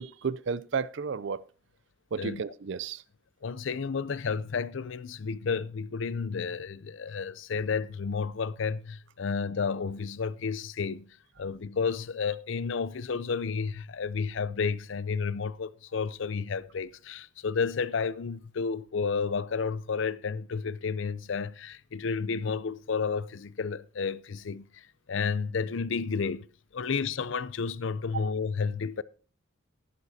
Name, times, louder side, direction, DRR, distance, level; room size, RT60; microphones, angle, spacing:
voice 1, 0.0-1.4 2.1-3.0 28.1-28.3, right 5 dB, 60° right, 0.5 m, -32 dB
voice 2, 3.4-11.1 11.4-26.5 26.7-29.0, left 5 dB, 65° left, 0.5 m, -31 dB
14.5 x 11.0 x 2.8 m
head